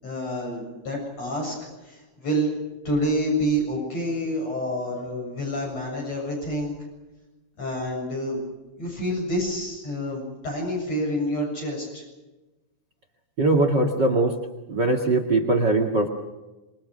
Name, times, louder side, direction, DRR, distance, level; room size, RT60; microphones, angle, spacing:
voice 1, 0.0-1.5 1.9-2.5 2.9-6.7 7.6-8.4 8.8-12.0, equal, 50° left, -1 dB, 8.7 m, -28 dB
voice 2, 13.4-14.3 14.7-16.1, right 2 dB, 35° right, 6 dB, 2.2 m, -21 dB
27.5 x 23.0 x 6.5 m, 1.1 s
omnidirectional pair, 3.7 m